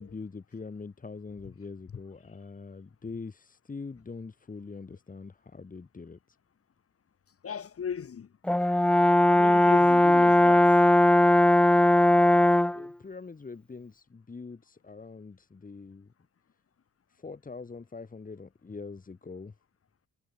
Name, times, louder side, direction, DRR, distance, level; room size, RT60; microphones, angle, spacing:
voice 1, 0.0-6.4 12.7-16.1 17.1-19.5, left 4 dB, 25° left, 3.7 m, -43 dB
voice 2, 7.4-8.3 9.3-10.7, left 7 dB, 50° left, 7.7 m, -37 dB
Brass instrument, 8.5-12.9, left 1 dB, 5° left, 0.5 m, -19 dB
cardioid pair, 90°, 30 cm